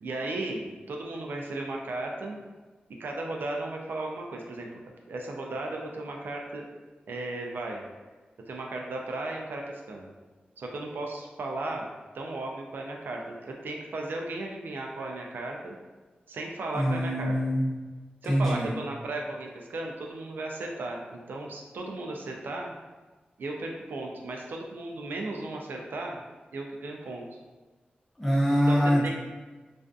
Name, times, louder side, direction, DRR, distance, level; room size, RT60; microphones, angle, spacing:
voice 1, 0.0-2.4 3.0-4.7 5.1-6.7 7.1-7.8 8.5-9.6 9.9-10.1 10.6-11.9 12.1-15.8 16.3-17.4 18.2-22.7 23.4-26.2 26.5-27.2 28.5-28.8 29.0-29.1, right 2 dB, 80° right, 0 dB, 0.3 m, -35 dB
voice 2, 16.7-17.8 18.3-18.7 28.2-29.1, equal, 10° left, -6 dB, 0.6 m, -24 dB
2.5 x 2.4 x 2.2 m, 1.3 s
wide cardioid pair, 155°, 3 cm